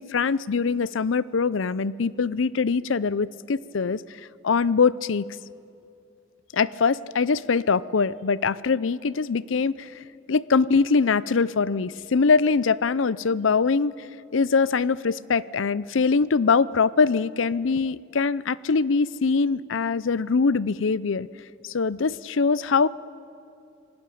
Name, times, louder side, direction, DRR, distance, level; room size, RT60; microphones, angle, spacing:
voice 1, 0.0-5.3 6.5-13.9 14.3-21.3 21.6-22.9, left 5 dB, 75° left, 19 dB, 0.6 m, -23 dB
27.5 x 18.5 x 8.5 m, 2.6 s
head